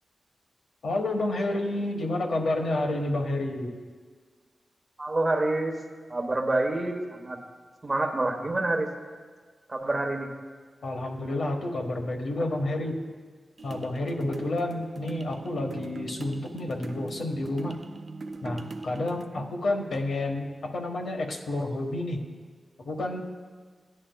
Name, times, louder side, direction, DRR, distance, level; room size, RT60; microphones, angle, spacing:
voice 1, 0.8-3.7 10.8-13.0 13.6-17.8 18.4-22.2 22.8-23.2, left 2 dB, 80° left, 3 dB, 1.2 m, -30 dB
voice 2, 5.0-5.8 6.1-7.4 7.8-8.9 9.7-10.3 19.3-19.4, right 2 dB, 25° right, 3 dB, 1.0 m, -27 dB
sound 1, 13.6-19.2, right 3 dB, 50° right, 0.4 m, -40 dB
16.5 x 9.9 x 2.2 m, 1.5 s
wide cardioid pair, 115°, 0 cm